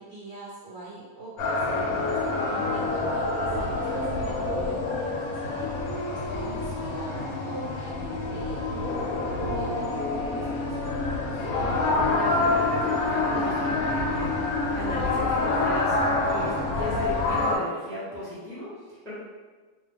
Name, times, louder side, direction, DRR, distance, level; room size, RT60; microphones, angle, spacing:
voice 1, 0.0-2.2 2.7-5.7 6.1-8.7 9.3-11.5, right 2 dB, 60° right, -6 dB, 1.0 m, -43 dB
sound 1, 1.4-17.6, left 2 dB, 85° left, 1.1 m, -27 dB
voice 2, 11.5-19.1, left 1 dB, ahead, -9 dB, 0.8 m, -37 dB
2.6 x 2.2 x 3.3 m, 1.3 s
omnidirectional pair, 1.5 m